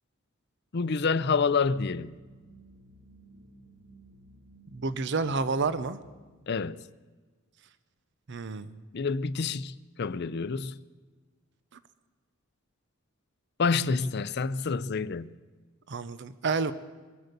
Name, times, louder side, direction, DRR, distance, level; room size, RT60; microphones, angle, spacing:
voice 1, 0.7-2.1 6.5-6.8 8.9-10.7 13.6-15.3, left 5 dB, 55° left, 0.5 m, -28 dB
sound 1, 1.1-6.1, right 2 dB, 75° right, 2.7 m, -55 dB
voice 2, 4.7-6.0 8.3-8.8 15.9-16.7, right 4 dB, 60° right, 0.6 m, -29 dB
23.5 x 8.0 x 6.7 m
head